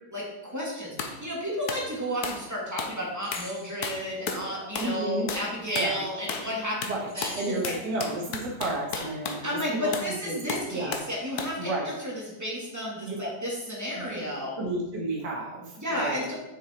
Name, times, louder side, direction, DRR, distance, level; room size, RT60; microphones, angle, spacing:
voice 1, 0.1-7.7 9.4-14.6 15.8-16.4, equal, 10° right, -4 dB, 2.4 m, -32 dB
sound 1, 1.0-1.2 1.7-1.9 2.2-2.5 2.8-3.0 3.3-3.5 3.8-4.5 4.8-5.0 5.3-5.5 5.8-5.9 6.3-6.5 6.8-9.5 9.9-10.1 10.5-11.1 11.4-11.6, left 5 dB, 65° left, 1.4 m, -34 dB
sound 2, 3.2-4.1 7.1-8.2, left 1 dB, 20° left, 0.4 m, -44 dB
voice 2, 4.8-5.3 5.7-6.0 6.9-7.1 7.3-10.0 10.2-11.0 11.6-11.9 13.0-13.3 14.1-14.2 14.6-16.3, right 2 dB, 65° right, -3 dB, 2.3 m, -32 dB
7.6 x 6.6 x 4.6 m, 0.94 s
omnidirectional pair, 1.9 m